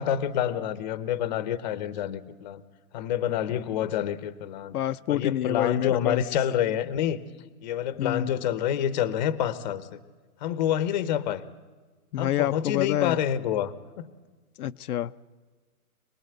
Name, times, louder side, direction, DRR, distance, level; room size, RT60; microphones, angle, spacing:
voice 1, 0.0-2.6 2.9-4.8 5.1-7.2 7.6-10.0 10.4-11.4 12.2-14.1, left 10 dB, 30° left, 15 dB, 1.0 m, -28 dB
voice 2, 4.7-6.2 8.0-8.4 12.1-13.2 14.6-15.2, left 12 dB, 85° left, 10 dB, 0.8 m, -27 dB
26.0 x 20.0 x 8.0 m, 1.4 s
hypercardioid pair, 170°, 43 cm